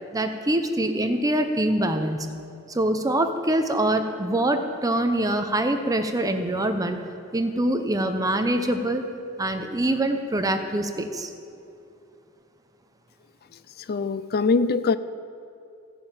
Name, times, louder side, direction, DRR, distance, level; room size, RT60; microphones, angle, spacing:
voice 1, 0.1-2.3 2.7-7.0 7.3-9.1 9.4-11.3, right 1 dB, 15° right, 6 dB, 0.7 m, -24 dB
voice 2, 13.9-15.0, left 4 dB, 45° left, 13 dB, 0.4 m, -22 dB
15.5 x 7.0 x 8.9 m, 2.6 s
head